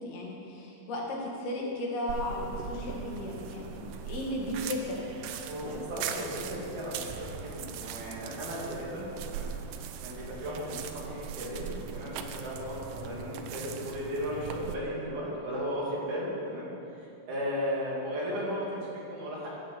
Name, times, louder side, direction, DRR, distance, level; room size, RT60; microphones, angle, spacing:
voice 1, 0.0-5.0, left 1 dB, 75° left, -2 dB, 3.6 m, -35 dB
sound 1, 2.1-14.7, right 8 dB, 85° right, 1.8 m, -40 dB
voice 2, 5.5-9.5 10.0-16.7 17.0-19.5, equal, 55° right, -6 dB, 3.7 m, -35 dB
14.0 x 6.7 x 7.7 m, 2.7 s
omnidirectional pair, 4.6 m